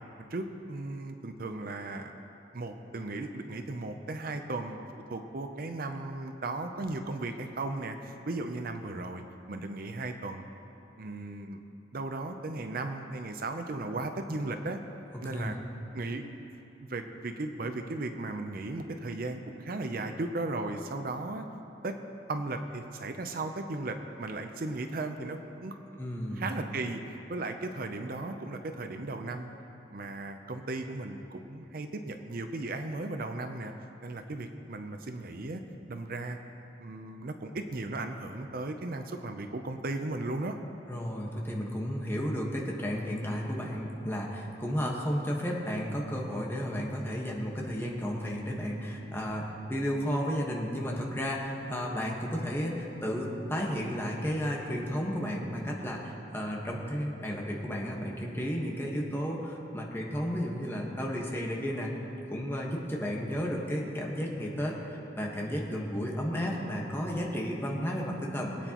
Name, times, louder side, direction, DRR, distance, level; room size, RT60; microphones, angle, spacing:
voice 1, 0.3-2.1 2.5-9.2 9.5-10.4 11.0-11.6 11.9-14.8 15.2-15.6 15.9-16.2 16.8-21.5 21.8-22.0 22.3-25.8 26.3-27.0 27.3-29.5 29.9-33.7 34.0-35.6 35.9-36.4 36.8-40.6, right 2 dB, 50° right, 6 dB, 0.6 m, -36 dB
voice 2, 26.0-26.4 40.9-61.9 62.3-68.7, equal, 15° left, -2 dB, 1.3 m, -33 dB
22.5 x 9.0 x 3.0 m, 2.9 s
head